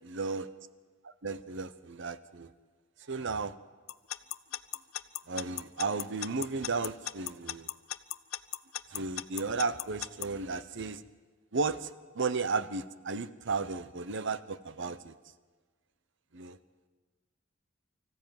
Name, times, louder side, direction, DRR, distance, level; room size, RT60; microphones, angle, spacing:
voice 1, 0.0-0.5 1.0-2.5 3.0-3.5 5.3-7.7 8.9-11.0 11.5-15.1 16.3-16.6, right 4 dB, 65° right, 14 dB, 0.9 m, -34 dB
Alarm / Clock, 3.9-10.3, left 13 dB, 85° left, 0.6 m, -36 dB
25.0 x 14.5 x 9.4 m, 1.4 s
head